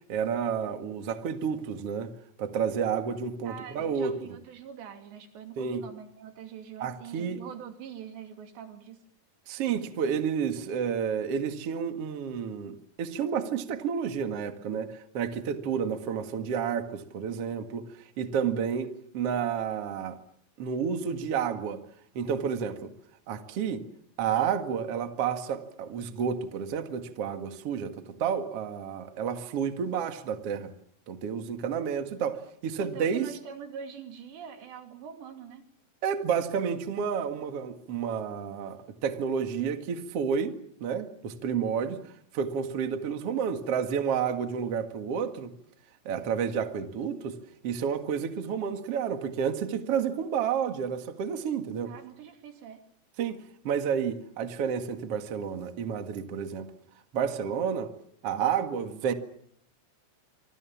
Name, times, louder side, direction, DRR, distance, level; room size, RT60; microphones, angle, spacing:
voice 1, 0.1-2.1 2.4-4.2 5.6-5.8 6.8-7.4 9.5-17.9 18.2-20.2 20.6-21.8 22.1-22.9 23.3-23.8 24.2-30.7 31.1-33.3 36.0-42.1 42.3-45.5 46.1-47.4 47.6-51.9 53.2-56.7 57.1-57.9 58.2-59.1, right 7 dB, 45° right, 2.3 m, -30 dB
voice 2, 3.4-9.0 32.8-35.7 51.9-52.8, right 8 dB, 85° right, 4.9 m, -44 dB
26.5 x 25.5 x 7.3 m
omnidirectional pair, 4.9 m